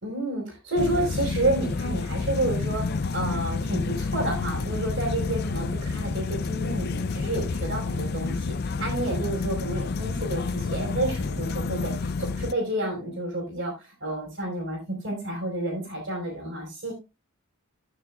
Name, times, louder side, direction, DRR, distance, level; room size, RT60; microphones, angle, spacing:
voice 1, 0.0-16.9, right 1 dB, 50° right, -2 dB, 4.4 m, -30 dB
sound 1, 0.8-12.5, left 4 dB, 45° left, 0.4 m, -29 dB
15.0 x 6.7 x 2.3 m, 0.26 s
head